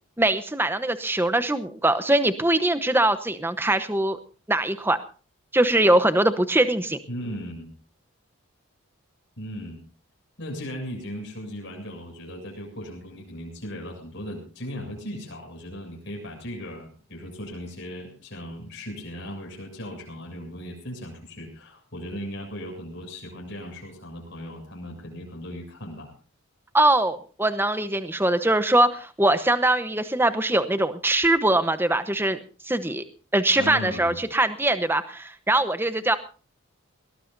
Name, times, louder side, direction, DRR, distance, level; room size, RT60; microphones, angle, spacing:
voice 1, 0.2-4.2 4.5-5.0 5.5-7.0 26.7-32.4 32.6-33.0 33.3-36.2, right 1 dB, 10° right, 11 dB, 0.9 m, -22 dB
voice 2, 7.1-7.7 9.4-9.8 10.4-26.1 33.6-34.2, equal, 50° left, 0 dB, 7.4 m, -37 dB
22.0 x 18.5 x 2.6 m, 0.38 s
head